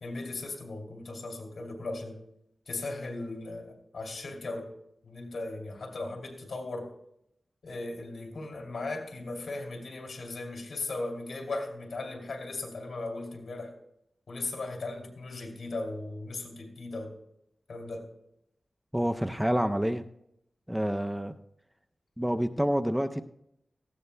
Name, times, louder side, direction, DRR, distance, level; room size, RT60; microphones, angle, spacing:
voice 1, 0.0-2.2 2.7-4.7 5.0-6.9 7.6-13.7 14.3-17.1 17.7-18.1, left 2 dB, 85° left, 1 dB, 2.5 m, -37 dB
voice 2, 18.9-20.0 20.7-21.4 22.2-23.2, equal, 5° right, 8 dB, 0.5 m, -28 dB
17.5 x 15.0 x 2.2 m, 0.79 s
wide cardioid pair, 85°, 0 cm